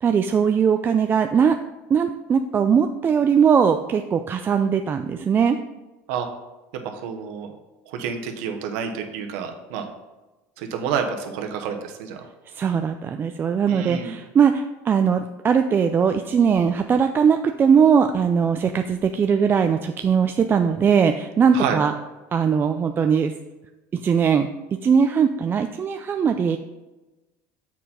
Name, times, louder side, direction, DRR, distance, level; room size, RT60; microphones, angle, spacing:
voice 1, 0.0-1.6 1.9-5.6 12.6-21.9 22.3-23.3 23.9-24.5 24.8-26.6, right 6 dB, 30° right, 7 dB, 0.3 m, -20 dB
voice 2, 6.8-7.5 7.9-9.8 10.6-12.2 13.7-14.1 21.5-21.8, right 7 dB, 80° right, 5 dB, 0.9 m, -29 dB
7.2 x 4.4 x 4.2 m, 1.1 s
supercardioid pair, 105°, 7 cm